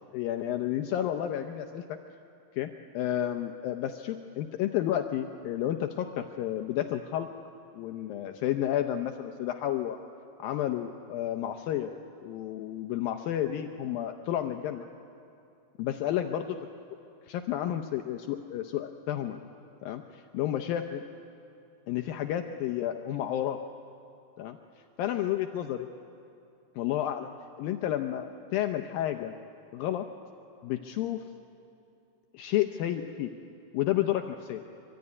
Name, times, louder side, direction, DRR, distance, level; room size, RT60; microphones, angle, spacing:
voice 1, 0.1-1.8 2.6-7.3 7.7-10.0 10.4-11.9 12.2-14.9 15.8-16.5 17.3-19.4 19.8-21.0 21.9-23.6 24.4-24.6 25.0-25.9 26.8-27.3 27.6-29.3 29.7-30.1 30.6-31.2 32.3-33.3 33.7-34.6, left 11 dB, 75° left, 5 dB, 2.4 m, -31 dB
25.0 x 24.5 x 9.7 m, 2.6 s
omnidirectional pair, 4.5 m